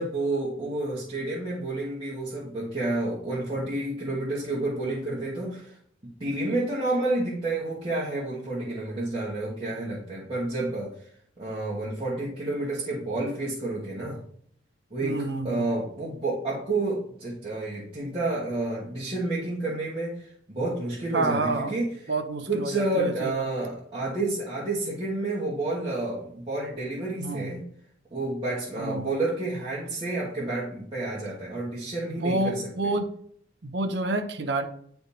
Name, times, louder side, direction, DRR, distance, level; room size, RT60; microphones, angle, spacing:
voice 1, 0.0-5.7 6.2-10.9 11.4-14.2 14.9-15.2 15.4-21.8 22.5-27.6 28.1-32.6, right 2 dB, 30° right, -8 dB, 1.4 m, -30 dB
voice 2, 15.0-15.7 21.1-21.8 22.1-23.5 27.2-27.7 28.7-29.2 32.1-33.1 33.6-34.7, right 2 dB, 65° right, 7 dB, 0.7 m, -29 dB
10.0 x 3.4 x 2.8 m, 0.62 s
head